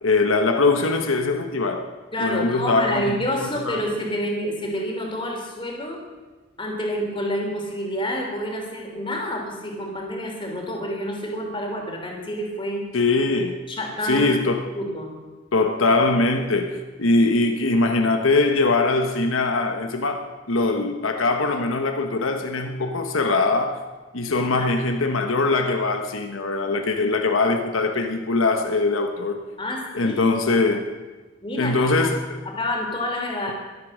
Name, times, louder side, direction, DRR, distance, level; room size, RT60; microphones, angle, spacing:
voice 1, 0.0-1.9 2.2-3.8 12.9-13.6 14.1-14.7 15.5-23.8 24.1-29.4 29.9-30.9 31.6-32.4, left 3 dB, 90° left, 1.2 m, -22 dB
voice 2, 2.1-6.0 6.6-12.9 13.7-14.3 14.7-15.1 24.3-24.7 29.6-30.2 31.4-32.1 32.4-33.5, equal, 25° left, 3.2 m, -28 dB
22.5 x 8.4 x 6.4 m
head